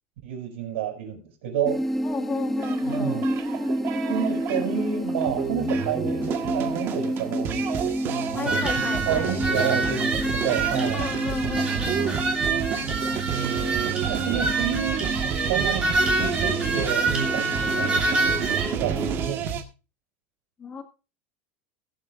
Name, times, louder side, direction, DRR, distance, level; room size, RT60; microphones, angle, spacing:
voice 1, 0.2-1.8 2.8-3.3 4.1-7.8 8.4-11.1 13.2-13.8 14.1-15.0 15.5-15.9 16.1-19.4, right 8 dB, 85° right, 3 dB, 6.1 m, -30 dB
sound 1, 1.7-19.3, equal, ahead, 0.5 m, -30 dB
voice 2, 2.0-3.3 5.8-6.4 8.3-9.8 10.9-12.3 20.6-20.8, left 5 dB, 20° left, 6 dB, 1.9 m, -35 dB
sound 2, 2.6-19.6, right 8 dB, 35° right, 1.6 m, -30 dB
sound 3, 8.5-18.7, right 3 dB, 15° right, 2.9 m, -27 dB
21.0 x 8.0 x 2.6 m, 0.31 s
supercardioid pair, 165°, 6 cm